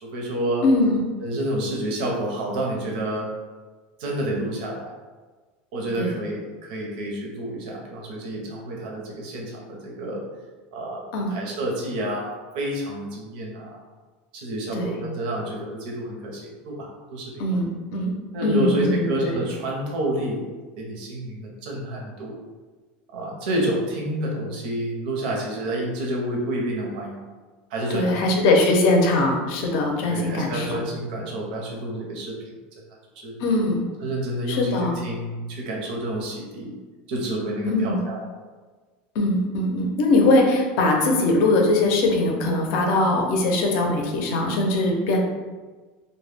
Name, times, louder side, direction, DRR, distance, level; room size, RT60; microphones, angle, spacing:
voice 1, 0.0-0.7 1.2-3.3 4.0-4.9 5.7-10.2 10.7-13.8 14.3-17.4 18.3-20.5 20.8-22.4 23.1-27.3 27.7-28.3 30.1-32.4 33.2-33.4 34.0-36.8 37.1-38.2, right 1 dB, 75° right, -1 dB, 0.6 m, -29 dB
voice 2, 0.6-1.0 6.0-6.1 11.1-11.3 14.7-15.0 17.4-18.1 18.4-19.4 27.9-30.8 33.4-33.9 34.5-35.0 37.6-38.0 39.1-45.2, left 2 dB, 55° left, 0 dB, 0.5 m, -21 dB
2.1 x 2.1 x 3.2 m, 1.3 s
supercardioid pair, 165°, 5 cm